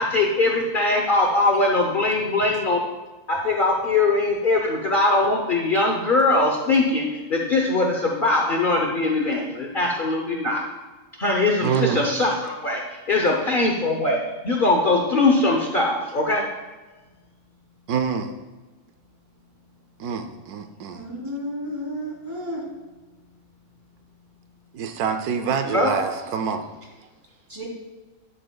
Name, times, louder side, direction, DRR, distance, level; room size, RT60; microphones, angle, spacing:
voice 1, 0.0-2.8 3.3-10.6 11.2-14.2 14.4-16.4 25.6-26.1, left 2 dB, 45° left, 0 dB, 0.8 m, -21 dB
voice 2, 11.6-12.0 17.9-18.3 20.0-21.0 24.7-26.6, right 7 dB, 85° right, 7 dB, 1.2 m, -26 dB
voice 3, 20.9-22.7 27.5-27.7, equal, 20° right, -5 dB, 3.0 m, -32 dB
11.5 x 7.7 x 2.3 m, 1.2 s
omnidirectional pair, 1.6 m